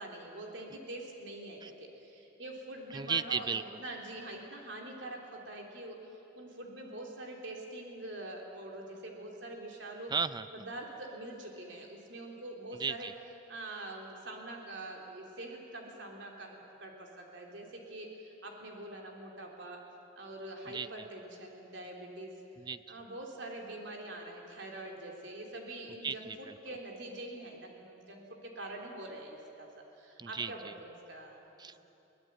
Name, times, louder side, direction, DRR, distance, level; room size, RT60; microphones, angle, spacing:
voice 1, 0.0-10.1 10.5-13.1 13.5-19.8 20.2-22.3 22.9-31.5, right 1 dB, 70° right, 0 dB, 3.5 m, -45 dB
voice 2, 2.9-3.6 10.1-10.5 12.7-13.1 20.7-21.1 22.6-22.8 26.0-26.6 30.2-30.7 31.6-31.8, right 5 dB, 25° right, 14 dB, 0.5 m, -35 dB
23.5 x 18.5 x 9.1 m, 2.9 s
head